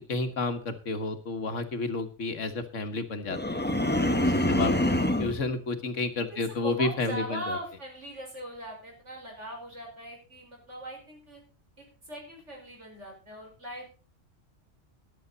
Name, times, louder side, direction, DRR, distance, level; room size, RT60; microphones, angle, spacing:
voice 1, 0.1-3.6 4.5-4.7 5.2-7.6, left 3 dB, 90° left, 8 dB, 1.9 m, -31 dB
sound 1, 3.3-5.4, left 1 dB, 10° left, 1.0 m, -25 dB
voice 2, 4.1-4.7 6.3-11.4 11.8-13.9, equal, 75° right, 0 dB, 5.5 m, -40 dB
14.5 x 11.0 x 4.1 m, 0.35 s
omnidirectional pair, 1.2 m